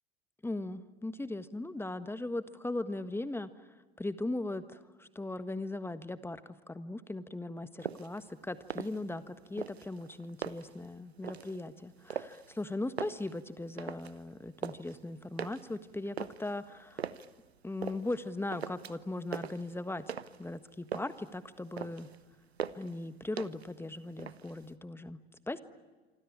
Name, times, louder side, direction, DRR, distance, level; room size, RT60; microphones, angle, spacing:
voice 1, 0.4-3.5 4.0-17.0 17.6-20.1 20.4-22.1 22.7-25.6, left 2 dB, 5° left, 12 dB, 1.4 m, -38 dB
sound 1, 7.8-8.2 8.6-9.3 9.6-10.8 11.2-11.6 12.1-12.6 12.9-14.2 14.4-14.9 15.4-17.3 17.8-18.2 18.5-19.1 19.3-20.5 20.7-21.3 21.6-22.2 22.6-23.0 23.4-23.8 24.1-24.7, right 7 dB, 80° right, 1.0 m, -41 dB
27.0 x 25.0 x 8.8 m, 1.3 s
figure-of-eight pair, 70°, 32 cm